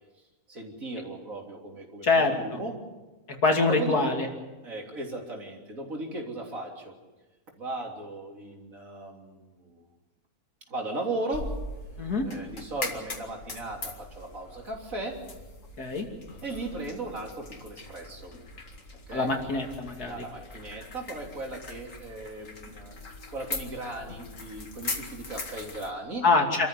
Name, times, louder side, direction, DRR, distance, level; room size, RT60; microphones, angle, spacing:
voice 1, 0.5-2.8 3.7-4.0 4.6-7.0 7.6-9.9 10.7-11.5 12.2-15.2 16.4-18.4 19.1-19.4 20.0-23.0 23.3-26.3, right 2 dB, 60° right, 1 dB, 3.7 m, -37 dB
voice 2, 2.0-2.3 3.4-4.3 12.0-12.3 15.8-16.1 19.1-20.2 26.2-26.7, left 3 dB, 75° left, 2 dB, 3.2 m, -24 dB
sound 1, 11.3-25.9, left 2 dB, 55° left, 2.5 m, -41 dB
27.0 x 14.0 x 8.4 m, 1.2 s
omnidirectional pair, 1.6 m